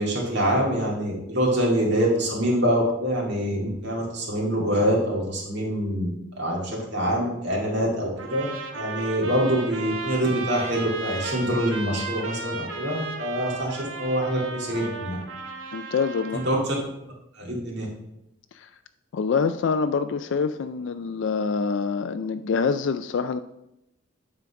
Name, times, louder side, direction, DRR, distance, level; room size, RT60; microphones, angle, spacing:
voice 1, 0.0-6.1 6.4-8.5 8.7-15.2 16.4-16.7 17.0-17.9, equal, 55° right, -3 dB, 2.2 m, -25 dB
sound 1, 8.2-16.6, right 3 dB, 70° right, 1.0 m, -35 dB
voice 2, 15.7-16.4 18.5-18.7 19.1-23.4, left 5 dB, 65° left, 10 dB, 0.3 m, -26 dB
9.1 x 3.9 x 5.7 m, 0.84 s
head